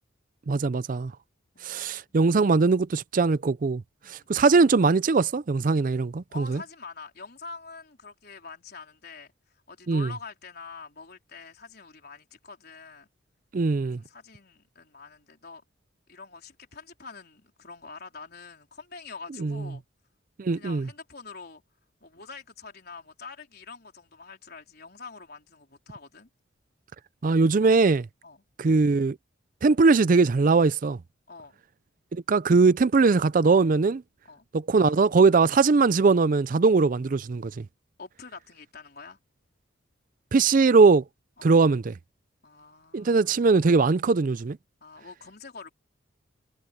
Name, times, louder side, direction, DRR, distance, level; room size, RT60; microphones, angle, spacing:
voice 1, 0.5-1.1 1.6-3.8 4.1-6.6 9.9-10.1 13.5-14.0 19.4-19.5 20.4-20.9 27.2-28.1 28.6-29.2 29.6-31.0 32.1-34.0 34.5-37.6 40.3-41.0 41.4-42.0 42.9-44.6, right 4 dB, 45° right, 0.4 m, -21 dB
voice 2, 1.5-2.2 4.0-4.3 6.3-13.1 13.8-15.6 16.1-19.8 20.5-21.6 22.0-26.3 28.2-28.4 31.3-31.6 34.3-34.5 38.0-39.2 41.4-41.5 42.4-43.4 44.8-45.7, left 4 dB, 50° left, 4.3 m, -45 dB
head